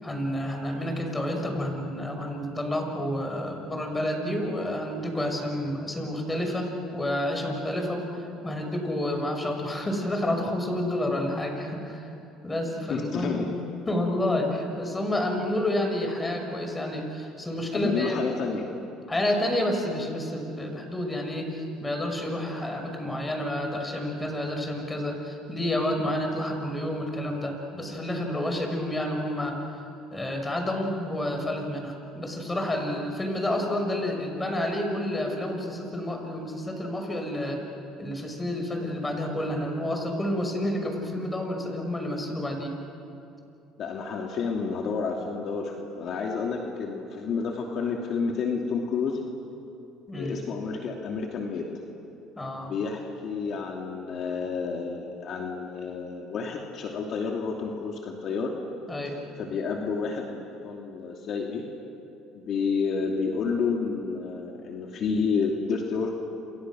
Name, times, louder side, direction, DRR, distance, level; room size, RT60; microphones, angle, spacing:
voice 1, 0.0-12.1 12.4-13.4 13.9-18.2 19.1-29.6 30.1-37.6 38.0-42.8 50.1-50.4 52.4-52.7 58.9-59.2, left 1 dB, 15° left, 3 dB, 6.2 m, -29 dB
voice 2, 12.9-13.5 17.7-18.7 43.8-49.2 50.1-51.7 52.6-58.5 59.4-61.6 62.3-66.2, left 5 dB, 55° left, 1 dB, 2.8 m, -30 dB
29.0 x 28.0 x 6.4 m, 2.8 s
supercardioid pair, 95°, 0 cm